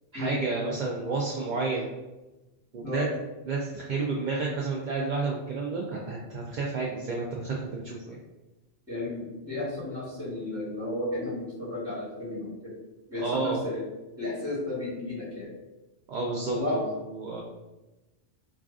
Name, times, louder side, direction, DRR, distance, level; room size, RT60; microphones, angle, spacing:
voice 1, 0.1-1.9 2.7-3.1 3.5-8.2 13.2-13.6 16.1-17.4, right 3 dB, 60° right, -3 dB, 0.5 m, -31 dB
voice 2, 8.9-12.7 13.1-13.8 14.2-15.5 16.5-16.8, left 2 dB, 10° right, -6 dB, 1.2 m, -33 dB
4.9 x 2.4 x 2.4 m, 1.1 s
omnidirectional pair, 1.2 m